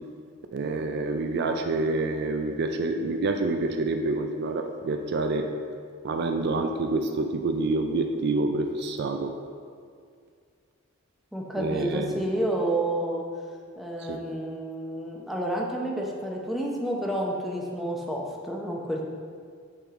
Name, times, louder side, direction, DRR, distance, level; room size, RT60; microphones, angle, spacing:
voice 1, 0.5-5.5 6.0-9.3 11.6-12.1 14.1-14.2, right 3 dB, 55° right, 5 dB, 0.4 m, -27 dB
voice 2, 11.3-13.2 13.8-19.1, right 1 dB, ahead, -2 dB, 0.7 m, -30 dB
8.5 x 3.6 x 3.6 m, 2.1 s
head